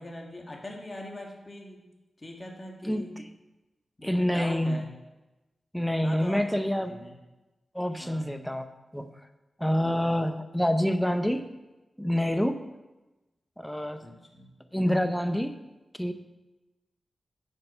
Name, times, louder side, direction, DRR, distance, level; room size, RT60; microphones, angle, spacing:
voice 1, 0.0-1.8 2.2-3.1 4.0-4.9 6.0-6.5 6.9-7.1 8.0-8.3 9.8-10.2 14.0-14.5, left 1 dB, 30° left, 0 dB, 1.4 m, -41 dB
voice 2, 2.8-3.3 4.0-4.8 5.7-7.0 7.7-8.7 8.9-9.1 9.6-11.4 12.0-12.6 13.6-14.0 14.7-15.5 16.0-16.1, equal, 5° left, 8 dB, 0.7 m, -27 dB
8.9 x 5.5 x 5.6 m, 1.1 s
cardioid pair, 75°, 0 cm